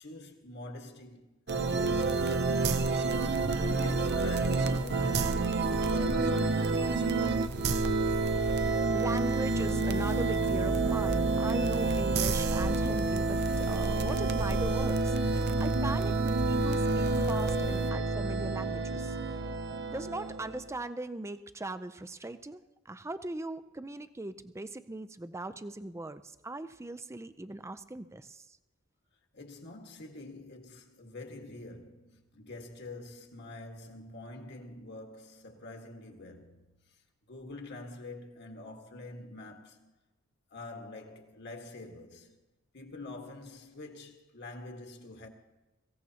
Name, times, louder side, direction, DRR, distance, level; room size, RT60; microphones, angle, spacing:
voice 1, 0.0-2.5 2.8-7.0 29.3-37.0 37.3-39.9 40.5-42.4 42.7-45.3, left 2 dB, 55° left, 1.7 m, -46 dB
sound 1, 1.5-20.7, right 3 dB, 55° right, 0.6 m, -28 dB
voice 2, 8.9-19.2 19.9-28.6, right 2 dB, 15° right, 0.5 m, -39 dB
23.5 x 15.5 x 2.9 m
head